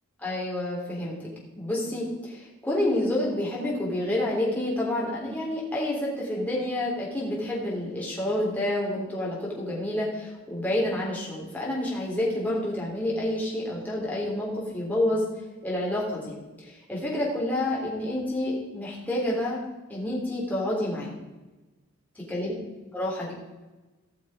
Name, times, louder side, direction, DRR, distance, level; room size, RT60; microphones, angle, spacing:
voice 1, 0.2-1.1 1.6-15.2 15.6-19.6 19.9-21.1 22.1-22.5 22.9-23.3, left 1 dB, 10° left, -6 dB, 3.5 m, -29 dB
16.5 x 6.3 x 5.0 m, 1.1 s
head